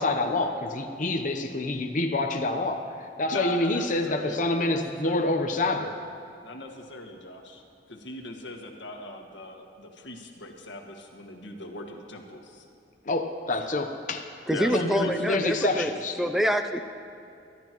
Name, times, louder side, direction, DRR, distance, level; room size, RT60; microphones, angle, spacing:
voice 1, 0.0-6.0 13.1-14.2 14.7-16.1, left 2 dB, 45° left, 4 dB, 0.8 m, -27 dB
voice 2, 3.3-5.2 6.4-12.6 14.5-15.1, left 2 dB, 80° left, 3 dB, 1.6 m, -39 dB
voice 3, 14.5-15.9 16.2-16.9, equal, ahead, 7 dB, 0.4 m, -26 dB
23.0 x 12.5 x 3.0 m, 2.6 s
head